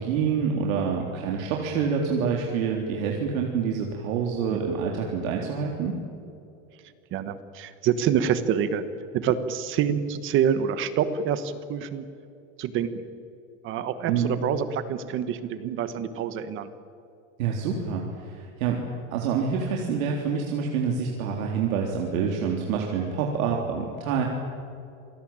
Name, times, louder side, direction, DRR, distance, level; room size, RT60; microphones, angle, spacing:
voice 1, 0.0-5.9 14.1-14.4 17.4-18.8 19.1-24.2, right 6 dB, 85° right, 0 dB, 3.8 m, -27 dB
voice 2, 7.1-8.8 9.1-12.1 12.6-13.0 13.6-16.7, right 8 dB, 30° right, 12 dB, 1.3 m, -26 dB
28.0 x 20.0 x 8.9 m, 2.6 s
supercardioid pair, 175°, 40 cm